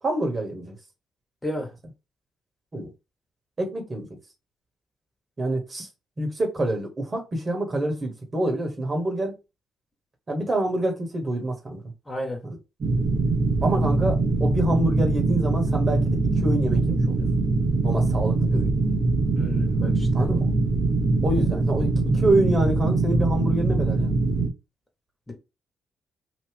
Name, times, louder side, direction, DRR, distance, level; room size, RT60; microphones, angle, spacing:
voice 1, 0.0-0.7 2.7-2.9 3.6-4.1 5.4-5.9 6.2-9.4 10.3-11.8 12.4-12.6 13.6-17.3 17.8-18.7 20.1-20.5 21.2-24.1, right 1 dB, 40° right, 1.5 m, -26 dB
voice 2, 12.1-12.4 19.3-20.1 25.3-25.4, left 1 dB, 25° left, 1.6 m, -31 dB
sound 1, 12.8-24.5, right 3 dB, 55° right, 1.1 m, -23 dB
3.0 x 2.6 x 3.5 m
hypercardioid pair, 45°, 0 cm